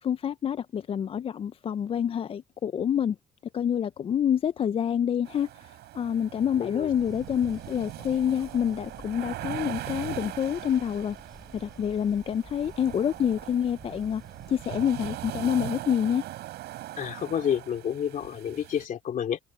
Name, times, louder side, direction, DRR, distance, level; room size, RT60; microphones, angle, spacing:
voice 1, 0.0-3.2 3.5-11.2 11.5-14.2 14.5-16.2, left 9 dB, 35° left, 0.4 m, -27 dB
sound 1, 5.3-18.8, right 16 dB, 80° right, 7.2 m, -40 dB
voice 2, 6.6-6.9 17.0-19.4, left 9 dB, 50° left, 2.5 m, -29 dB
sound 2, 6.9-15.1, equal, ahead, 4.3 m, -51 dB
cardioid pair, 110°, 17 cm